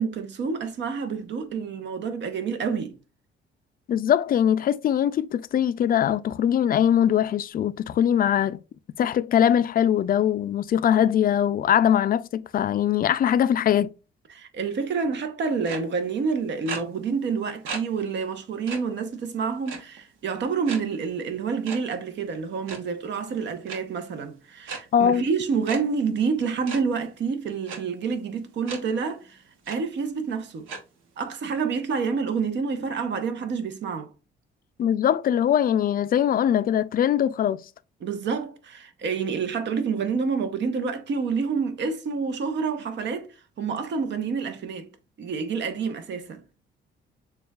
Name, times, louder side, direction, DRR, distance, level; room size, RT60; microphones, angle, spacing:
voice 1, 0.0-2.9 14.3-30.7 31.2-34.1 38.0-43.3 43.6-44.9 45.2-46.4, right 5 dB, 65° right, 0.9 m, -28 dB
voice 2, 3.9-8.6 9.0-13.9 24.9-25.2 34.8-37.6, left 9 dB, 45° left, 0.4 m, -22 dB
sound 1, 15.6-15.8 16.6-16.8 17.6-17.8 18.2-18.3 18.7-18.8 19.6-20.0 20.7-20.8 21.6-21.8 22.5-22.8 23.7-23.8 24.6-24.8 25.6-25.8 26.7-26.8 27.7-27.8 28.7-28.8 29.2-29.3 29.6-29.8 30.7-30.8, right 5 dB, 85° right, 1.1 m, -34 dB
6.9 x 2.4 x 2.3 m
cardioid pair, 90°, 20 cm